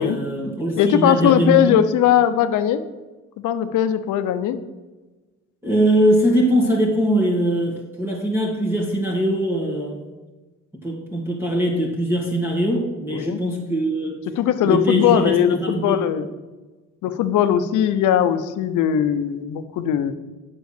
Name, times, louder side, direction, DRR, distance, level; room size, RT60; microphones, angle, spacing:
voice 1, 0.0-1.8 5.6-10.0 10.8-14.2 14.6-16.0, right 1 dB, 10° right, -2 dB, 1.8 m, -21 dB
voice 2, 0.8-2.8 3.4-4.6 13.1-13.4 14.4-16.3 17.0-20.1, left 10 dB, 90° left, 10 dB, 0.8 m, -19 dB
8.2 x 5.6 x 6.6 m, 1.2 s
cardioid pair, 90°, 30 cm